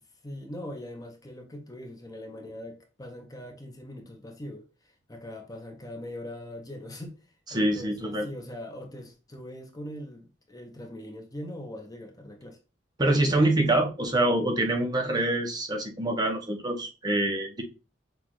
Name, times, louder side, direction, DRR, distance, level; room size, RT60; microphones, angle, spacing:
voice 1, 0.2-12.6, left 1 dB, 20° left, 0.7 m, -41 dB
voice 2, 7.5-8.3 13.0-17.6, right 1 dB, 20° right, 0.8 m, -25 dB
6.1 x 2.4 x 3.0 m
head